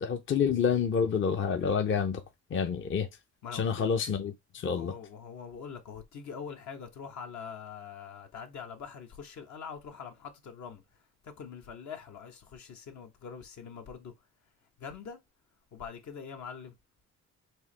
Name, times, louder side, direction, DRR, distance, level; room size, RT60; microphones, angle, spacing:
voice 1, 0.0-2.2 2.5-3.1 3.5-4.9, left 6 dB, 40° left, 0.6 m, -28 dB
voice 2, 3.4-3.9 4.6-10.8 11.2-14.1 14.8-15.2 15.7-16.7, left 6 dB, 70° left, 1.1 m, -44 dB
4.7 x 2.9 x 3.2 m
cardioid pair, 90°, 30 cm